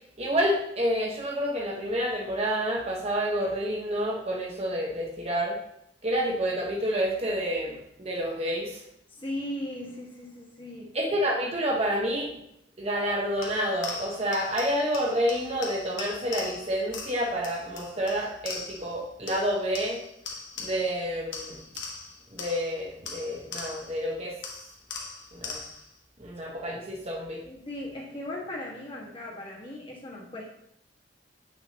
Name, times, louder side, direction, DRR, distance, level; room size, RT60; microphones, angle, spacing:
voice 1, 0.2-5.6 6.0-8.8 10.9-12.3 12.8-20.0 20.6-21.6 22.3-24.4 25.3-25.6 26.2-27.4, equal, 35° right, -1 dB, 1.0 m, -29 dB
voice 2, 9.1-10.9 27.4-30.6, left 1 dB, 30° left, -4 dB, 1.6 m, -37 dB
Pull up the clock., 13.4-19.0 19.3-21.0 21.3-24.0 24.4-25.9, left 4 dB, 90° left, 1.2 m, -40 dB
8.2 x 6.0 x 2.9 m, 0.76 s
head